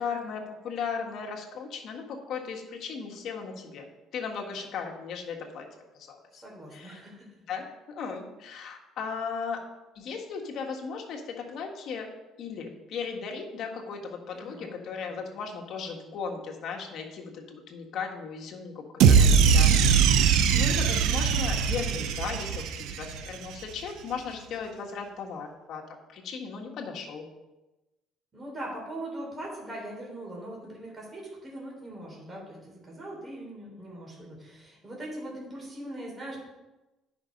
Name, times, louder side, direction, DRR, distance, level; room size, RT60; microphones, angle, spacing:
voice 1, 0.0-3.9 4.1-5.7 5.9-6.4 6.7-7.0 7.5-9.6 9.9-12.1 12.4-25.8 26.1-27.3, left 5 dB, 60° left, 1 dB, 1.7 m, -37 dB
voice 2, 6.4-7.3 14.3-14.7 28.3-36.4, right 1 dB, 20° right, -3 dB, 3.7 m, -40 dB
sound 1, 19.0-23.3, right 6 dB, 80° right, 0.7 m, -21 dB
9.9 x 5.9 x 5.2 m, 1.0 s
cardioid pair, 125°, 0 cm